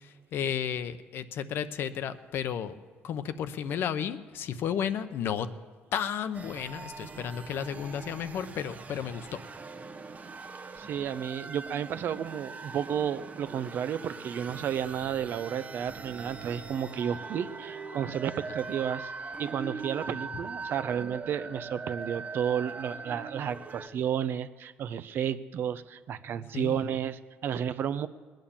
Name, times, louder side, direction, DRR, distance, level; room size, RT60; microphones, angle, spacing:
voice 1, 0.0-2.7 3.0-5.5 5.9-9.4 26.5-26.8, left 8 dB, 65° left, 11 dB, 0.9 m, -33 dB
sound 1, 6.3-23.9, right 4 dB, 35° right, 1.0 m, -42 dB
voice 2, 10.8-19.1 19.4-28.1, right 9 dB, 60° right, 13 dB, 0.7 m, -32 dB
20.5 x 9.2 x 7.3 m, 1.5 s
cardioid pair, 105°, 4 cm